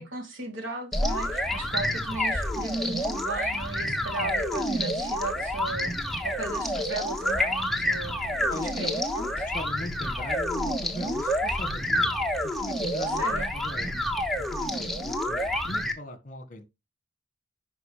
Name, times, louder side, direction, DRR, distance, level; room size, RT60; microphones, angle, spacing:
voice 1, 0.0-5.9 6.2-9.3 13.2-13.5, right 2 dB, 75° right, 3.0 m, -36 dB
sound 1, 0.9-15.9, left 1 dB, ahead, 1.3 m, -28 dB
voice 2, 8.5-8.9 9.3-16.6, left 1 dB, 40° left, 1.6 m, -40 dB
11.0 x 5.3 x 3.3 m
head